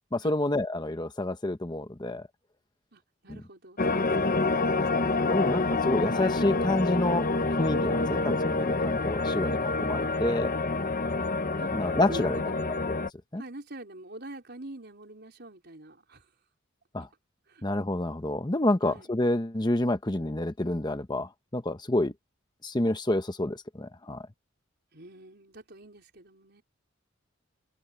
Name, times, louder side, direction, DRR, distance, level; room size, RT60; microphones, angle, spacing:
voice 1, 0.1-2.2 5.3-10.5 11.7-12.4 13.3-13.4 16.9-17.1 17.6-22.1 22.6-24.2, left 1 dB, 20° left, 0.9 m, -28 dB
voice 2, 2.9-5.5 11.6-11.7 12.1-12.7 13.4-16.3 17.5-17.6 18.8-19.1 24.9-26.6, right 2 dB, 55° right, 4.6 m, -45 dB
sound 1, 3.8-13.1, left 3 dB, 40° left, 1.0 m, -27 dB
open air
head